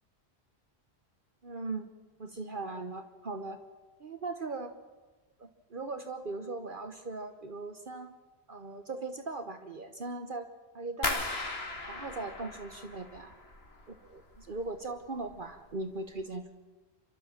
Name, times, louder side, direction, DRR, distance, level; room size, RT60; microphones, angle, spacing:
voice 1, 1.4-1.9 2.2-3.6 4.0-4.7 5.4-8.2 8.5-10.5 10.7-11.3 11.9-13.3 13.9-16.5, right 3 dB, 50° right, 7 dB, 1.3 m, -39 dB
sound 1, 11.0-13.9 14.2-14.9 15.2-15.7 16.1-16.2, left 2 dB, 65° left, 2.3 m, -37 dB
28.5 x 13.0 x 7.5 m, 1.2 s
omnidirectional pair, 1.1 m